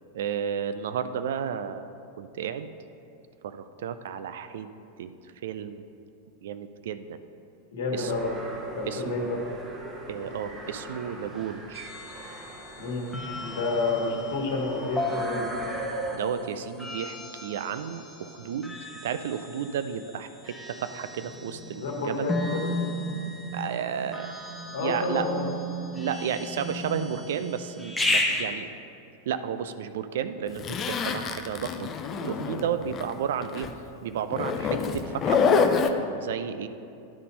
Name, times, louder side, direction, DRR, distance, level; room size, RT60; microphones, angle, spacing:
voice 1, 0.1-1.9 2.2-2.7 3.4-4.7 5.0-5.1 5.4-5.8 6.4-7.2 7.9-8.1 8.9-9.3 10.1-11.9 16.1-22.3 23.5-24.3 24.8-25.3 26.0-28.7 29.3-31.9 32.2-33.7 34.0-35.7 36.0-36.7, right 8 dB, 60° right, 11 dB, 0.3 m, -32 dB
voice 2, 7.7-8.3 8.8-9.4 12.8-13.1 13.4-15.5 21.7-22.7 24.7-25.4 32.5-32.8, left 3 dB, 60° left, -1 dB, 1.5 m, -29 dB
sound 1, 8.0-16.2, right 2 dB, 25° right, 1.0 m, -40 dB
sound 2, 11.7-28.4, left 1 dB, 5° left, 0.9 m, -34 dB
Zipper (clothing), 30.6-33.1 33.4-33.7 34.3-35.9, left 6 dB, 30° left, 0.5 m, -26 dB
10.5 x 4.1 x 5.3 m, 2.6 s
figure-of-eight pair, 90°, 0 cm